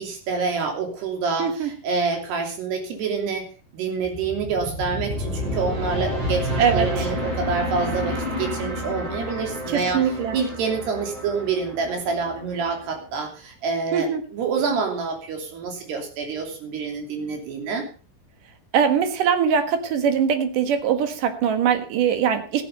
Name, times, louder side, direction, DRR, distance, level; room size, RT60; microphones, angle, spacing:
voice 1, 0.0-3.4 3.7-10.0 10.3-17.9, right 5 dB, 80° right, 3 dB, 5.1 m, -27 dB
voice 2, 1.4-1.7 6.6-6.9 9.7-10.4 13.9-14.2 18.7-22.6, right 7 dB, 60° right, 9 dB, 2.8 m, -21 dB
sound 1, 4.0-13.2, left 1 dB, 30° right, 5.1 m, -30 dB
14.5 x 10.0 x 5.4 m, 0.37 s
omnidirectional pair, 4.7 m